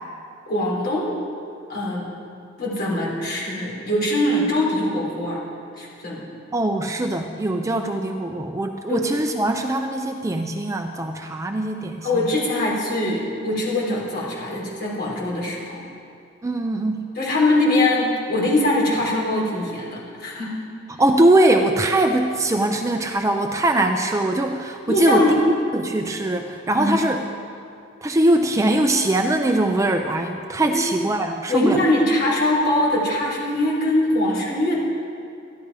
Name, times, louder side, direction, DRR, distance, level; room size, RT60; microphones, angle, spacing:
voice 1, 0.5-1.2 1.7-2.1 2.6-5.4 5.8-6.2 8.9-9.0 12.0-15.8 17.2-20.5 24.9-25.4 26.8-27.0 30.7-30.8 31.5-34.8, left 1 dB, 50° left, -5 dB, 3.6 m, -22 dB
voice 2, 6.5-12.1 16.4-17.1 21.0-25.3 25.7-27.2 28.0-31.8, right 1 dB, 15° right, 5 dB, 0.4 m, -21 dB
13.5 x 11.0 x 4.8 m, 2.5 s
head